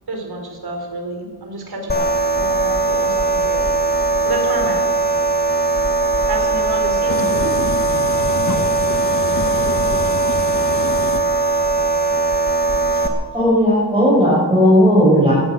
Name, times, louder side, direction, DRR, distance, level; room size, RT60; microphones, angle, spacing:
voice 1, 0.1-2.1 2.3-3.7 4.2-4.8 6.3-7.6, right 2 dB, 60° right, 3 dB, 4.0 m, -28 dB
sound 1, 1.9-13.1, right 3 dB, 25° left, 1.7 m, -19 dB
voice 2, 7.1-11.2, left 5 dB, 45° left, 9 dB, 1.1 m, -27 dB
voice 3, 13.3-15.3, equal, 10° right, -8 dB, 6.2 m, -14 dB
17.0 x 13.5 x 6.2 m, 1.5 s
wide cardioid pair, 95°, 42 cm